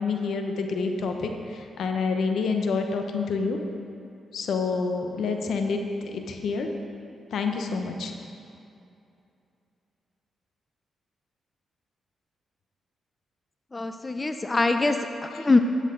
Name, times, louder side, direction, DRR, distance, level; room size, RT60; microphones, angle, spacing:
voice 1, 0.0-3.6 4.3-6.7 7.3-8.1, left 4 dB, 75° left, 4 dB, 0.9 m, -28 dB
voice 2, 13.7-15.6, left 3 dB, 25° left, 7 dB, 0.5 m, -23 dB
11.5 x 7.9 x 3.8 m, 2.6 s
cardioid pair, 65°, 0 cm